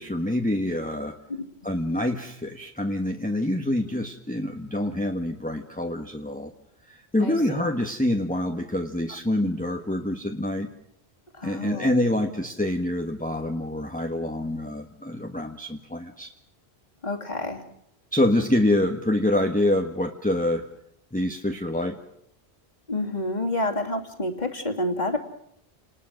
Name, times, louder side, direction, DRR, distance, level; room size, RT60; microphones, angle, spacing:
voice 1, 0.0-1.2 1.6-6.5 6.9-10.7 11.4-16.3 18.1-20.6 21.1-22.0, left 1 dB, 10° left, 3 dB, 1.4 m, -26 dB
voice 2, 11.3-12.0 17.0-17.6 22.9-25.2, left 1 dB, 40° left, 4 dB, 2.9 m, -28 dB
29.5 x 20.0 x 6.5 m, 0.74 s
omnidirectional pair, 1.1 m